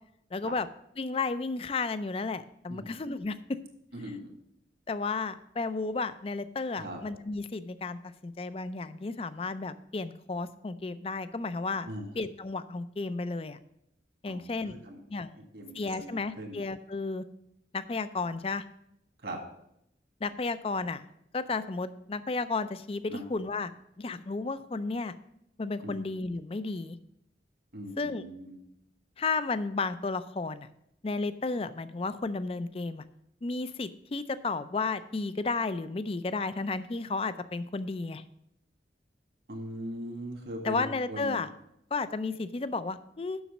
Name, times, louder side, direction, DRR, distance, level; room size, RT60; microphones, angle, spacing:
voice 1, 0.3-0.7 1.0-3.6 4.9-11.9 12.2-13.6 14.2-14.8 15.1-15.3 15.7-17.2 17.7-18.6 20.2-21.0 21.3-23.7 24.0-25.1 25.6-27.0 28.0-28.2 29.2-30.7 31.0-33.1 33.4-38.2 40.6-41.5 41.9-43.4, left 3 dB, 30° left, 14 dB, 0.4 m, -33 dB
voice 2, 3.9-4.3 6.8-7.0 11.8-12.1 14.3-15.0 15.5-16.6 19.2-19.4 23.1-23.2 25.8-26.0 27.7-28.6 39.5-41.4, equal, 70° right, 2 dB, 1.9 m, -40 dB
7.2 x 6.2 x 7.0 m, 0.78 s
head